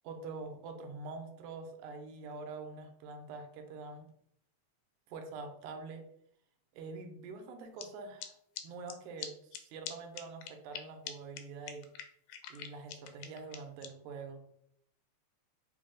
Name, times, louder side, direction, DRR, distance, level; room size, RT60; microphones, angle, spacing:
voice 1, 0.0-4.0 5.1-6.0 6.7-8.3 8.6-11.9 12.5-14.4, right 4 dB, 90° right, 5 dB, 2.0 m, -45 dB
sound 1, 7.8-7.9 8.2-8.3 8.6-8.7 8.9-9.0 9.2-9.3 9.5-9.6 9.9-10.0 10.2-10.8 11.1-11.2 11.4-11.5 11.7-13.9, left 10 dB, 85° left, 2.0 m, -42 dB
4.7 x 2.1 x 3.7 m, 0.71 s
omnidirectional pair, 3.4 m